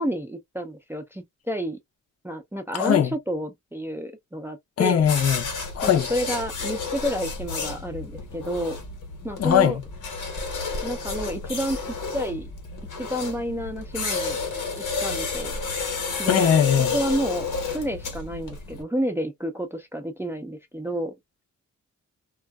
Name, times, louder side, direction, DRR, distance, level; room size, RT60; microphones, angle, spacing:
voice 1, 0.0-1.8 2.2-5.1 5.8-8.8 9.2-9.8 10.8-12.5 13.0-14.4 14.8-15.6 16.2-16.5 16.9-21.1, equal, 10° right, 0.4 m, -30 dB
voice 2, 2.7-3.1 4.8-5.4 5.8-6.1 9.4-9.8 16.3-16.9, left 9 dB, 55° left, 0.6 m, -20 dB
sound 1, 5.0-18.8, left 4 dB, 85° left, 1.1 m, -31 dB
2.4 x 2.3 x 2.2 m
cardioid pair, 100°, 31 cm